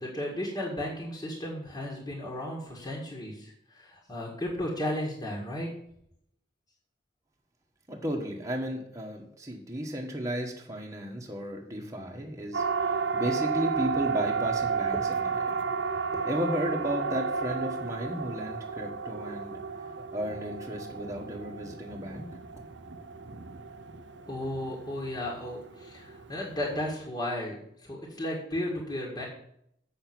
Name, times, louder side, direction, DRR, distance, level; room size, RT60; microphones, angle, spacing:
voice 1, 0.0-5.7 24.3-29.3, left 1 dB, 20° left, -3 dB, 1.9 m, -34 dB
voice 2, 7.9-15.6 16.2-19.6 20.1-22.3, equal, 15° right, 0 dB, 1.4 m, -34 dB
Siren, 12.5-26.8, right 5 dB, 75° right, 0.8 m, -33 dB
7.9 x 6.7 x 6.0 m, 0.72 s
head